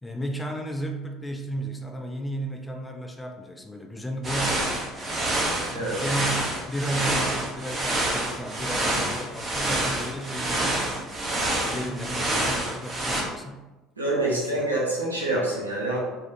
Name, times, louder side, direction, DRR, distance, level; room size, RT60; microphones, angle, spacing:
voice 1, 0.0-5.3 5.7-11.1 11.7-13.6 14.5-14.7, right 1 dB, 10° left, 3 dB, 0.3 m, -34 dB
sound 1, 4.2-13.2, right 1 dB, 30° right, 0.6 m, -27 dB
voice 2, 14.0-16.0, right 2 dB, 90° right, -4 dB, 0.5 m, -26 dB
2.3 x 2.0 x 2.8 m, 1.1 s
figure-of-eight pair, 65°, 0 cm